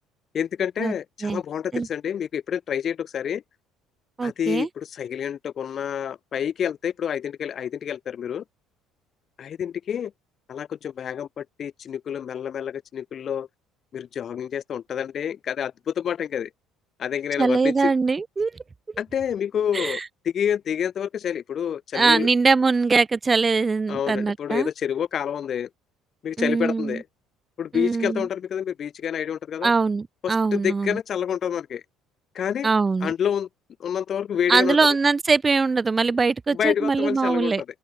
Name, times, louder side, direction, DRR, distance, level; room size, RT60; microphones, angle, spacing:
voice 1, 0.3-3.4 4.2-8.4 9.4-10.1 10.5-13.5 13.9-16.5 17.0-17.9 19.0-22.3 23.9-25.7 26.2-27.0 27.6-29.7 30.2-31.8 32.3-32.7 33.0-33.5 33.8-34.8 36.5-37.6, left 8 dB, 50° left, 1.7 m, -28 dB
voice 2, 4.2-4.7 17.4-18.5 19.7-20.0 21.9-24.7 26.4-27.0 27.7-28.3 29.6-31.0 32.6-33.1 34.5-37.6, right 4 dB, 25° right, 1.3 m, -22 dB
open air
hypercardioid pair, 65°, 0 cm